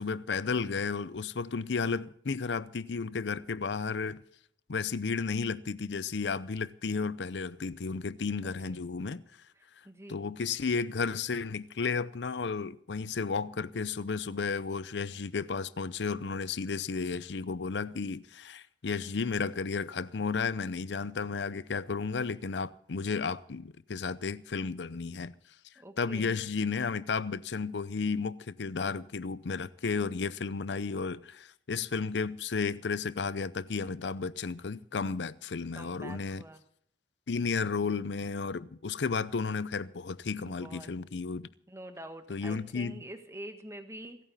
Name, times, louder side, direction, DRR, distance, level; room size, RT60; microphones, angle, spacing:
voice 1, 0.0-4.2 4.7-9.2 10.1-25.3 26.0-36.4 37.3-41.5 42.3-43.0, left 5 dB, 85° left, 0.6 m, -33 dB
voice 2, 9.8-10.2 25.7-26.4 35.7-36.6 40.4-40.9 41.7-44.2, right 1 dB, 15° right, 1.4 m, -46 dB
27.0 x 9.1 x 4.1 m
head